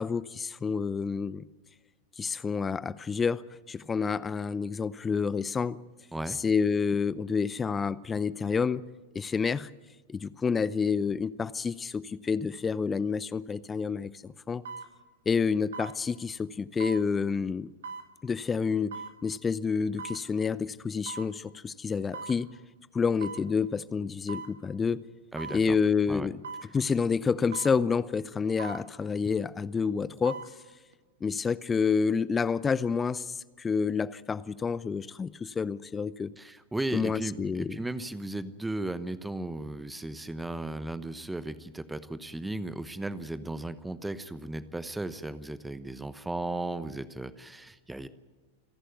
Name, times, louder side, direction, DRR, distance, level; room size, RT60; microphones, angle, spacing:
voice 1, 0.0-1.4 2.2-5.8 6.4-8.8 9.1-9.7 10.1-14.6 15.3-17.7 18.2-18.9 19.2-22.5 22.9-25.0 25.5-26.4 26.7-30.4 31.2-36.3 36.9-37.8, left 5 dB, 15° left, 0.6 m, -29 dB
sound 1, 13.5-13.7 14.7-14.9 15.7-16.0 16.8-17.1 17.8-18.1 18.9-19.2 20.0-20.2 21.1-21.3 22.1-22.4 23.2-23.5 24.3-24.5 25.4-25.6 26.4-26.7 27.5-27.8 28.6-28.9 30.0-30.5 30.9-31.0, right 4 dB, 65° right, 2.6 m, -40 dB
voice 2, 25.3-25.8 26.1-26.3 36.4-48.1, right 2 dB, 5° right, 1.0 m, -36 dB
29.0 x 11.5 x 9.2 m
figure-of-eight pair, 90°, 0 cm